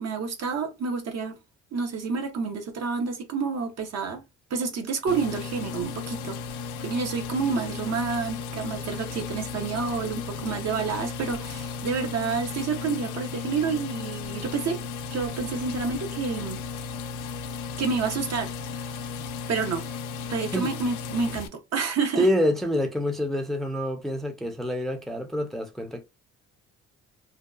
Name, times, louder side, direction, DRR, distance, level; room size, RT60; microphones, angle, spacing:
voice 1, 0.0-1.4 1.7-4.2 4.5-6.4 6.8-14.8 15.1-16.6 17.8-19.0 19.5-19.8 20.3-22.3, right 5 dB, 55° right, 0.8 m, -29 dB
sound 1, 5.1-21.5, left 5 dB, 80° left, 0.5 m, -35 dB
voice 2, 22.2-26.0, equal, ahead, 0.5 m, -27 dB
2.7 x 2.2 x 2.3 m
cardioid pair, 90°, 30 cm